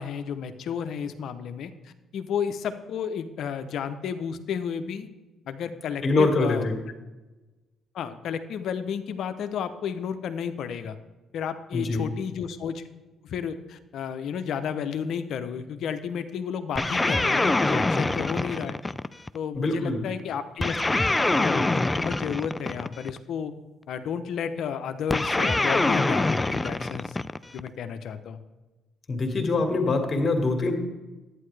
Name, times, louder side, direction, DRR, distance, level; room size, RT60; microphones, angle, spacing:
voice 1, 0.0-5.1 5.5-6.7 7.9-11.0 11.3-12.8 13.2-18.8 19.3-20.8 21.3-23.5 23.9-27.2 27.5-28.4, left 7 dB, 70° left, 10 dB, 0.7 m, -32 dB
voice 2, 6.0-6.8 11.7-12.0 19.5-20.0 29.1-30.7, left 3 dB, 40° left, 4 dB, 1.8 m, -24 dB
sound 1, 16.8-19.4 20.6-23.2 25.1-27.7, left 2 dB, 20° left, 0.3 m, -25 dB
11.0 x 9.2 x 3.3 m, 1.2 s
supercardioid pair, 65°, 0 cm